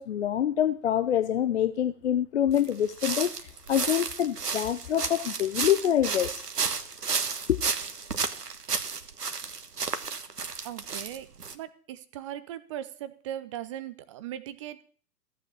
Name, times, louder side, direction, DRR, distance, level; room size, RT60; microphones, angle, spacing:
voice 1, 0.0-6.4 7.5-7.6, left 10 dB, 45° left, 0.8 m, -26 dB
sound 1, 2.5-11.5, right 5 dB, 75° right, 1.4 m, -32 dB
voice 2, 10.6-11.3 11.5-14.8, right 11 dB, 20° right, 0.6 m, -39 dB
15.0 x 8.4 x 7.3 m
figure-of-eight pair, 120°, 48 cm